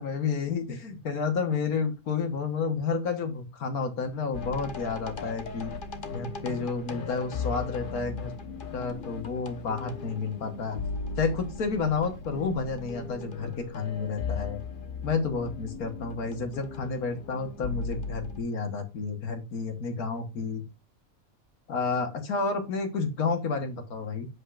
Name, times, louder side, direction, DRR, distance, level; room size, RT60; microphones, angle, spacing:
voice 1, 0.0-5.7 6.1-8.3 8.7-10.8 11.2-14.6 15.0-20.6 21.7-24.3, left 4 dB, 90° left, 6 dB, 1.8 m, -30 dB
sound 1, 4.3-18.4, left 4 dB, 40° left, 1.1 m, -37 dB
8.1 x 5.4 x 2.5 m, 0.26 s
omnidirectional pair, 1.5 m